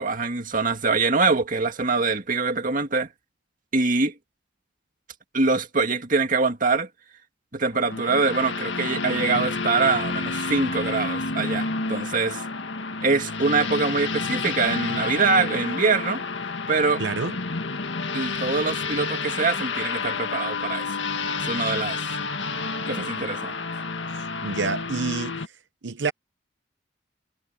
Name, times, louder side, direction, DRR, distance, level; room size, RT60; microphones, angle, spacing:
voice 1, 0.0-3.1 3.7-4.1 5.3-6.9 7.5-12.4 13.0-16.2 16.7-17.0 18.1-20.9 21.4-22.0 22.8-23.5, right 4 dB, 50° right, 2.0 m, -24 dB
sound 1, 7.7-25.5, left 4 dB, 90° left, 1.9 m, -30 dB
voice 2, 17.0-17.3 24.4-25.4 25.8-26.1, right 4 dB, 80° right, 0.8 m, -27 dB
head